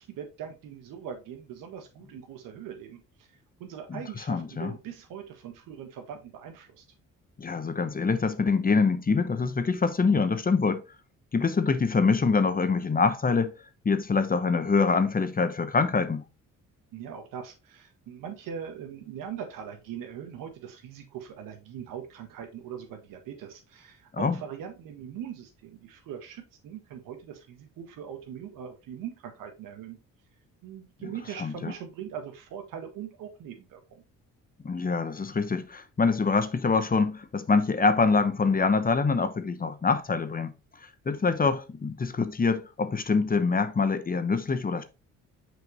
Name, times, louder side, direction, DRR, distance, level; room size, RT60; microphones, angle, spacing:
voice 1, 0.0-3.3 3.6-6.8 16.9-30.0 30.6-34.0, right 8 dB, 85° right, 1.5 m, -41 dB
voice 2, 3.9-4.7 7.4-10.8 11.3-13.5 13.8-16.3 24.1-24.4 31.4-31.7 34.6-40.5 41.1-44.8, left 4 dB, 25° left, 0.9 m, -25 dB
6.2 x 5.1 x 3.1 m
cardioid pair, 75°, 32 cm